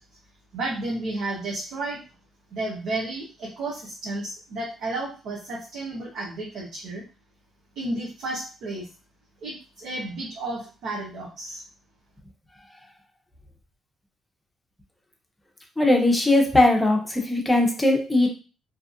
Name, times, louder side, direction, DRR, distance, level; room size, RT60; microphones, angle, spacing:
voice 1, 0.5-2.0 2.5-7.0 7.8-8.9 9.4-11.6, right 2 dB, 75° right, -4 dB, 0.8 m, -32 dB
voice 2, 15.8-18.3, left 2 dB, 10° left, 1 dB, 0.7 m, -19 dB
2.7 x 2.3 x 2.5 m, 0.34 s
cardioid pair, 90°, 0 cm